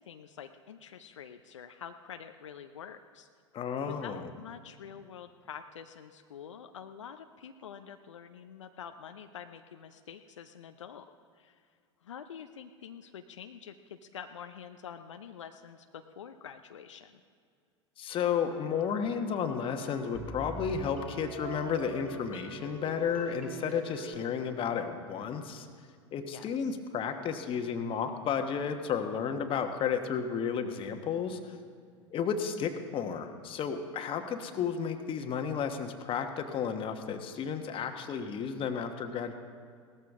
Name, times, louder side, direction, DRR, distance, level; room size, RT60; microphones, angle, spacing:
voice 1, 0.0-3.3 3.8-11.1 11.4-11.6 12.0-17.2 26.3-26.8, left 8 dB, 80° left, 7 dB, 0.6 m, -47 dB
voice 2, 3.5-4.3 18.0-25.7 26.1-31.6 32.1-39.3, left 7 dB, 35° left, 6 dB, 1.2 m, -32 dB
sound 1, 18.1-24.1, right 3 dB, 10° right, 3.7 m, -44 dB
17.5 x 14.0 x 3.6 m, 2.2 s
hypercardioid pair, 90°, 15 cm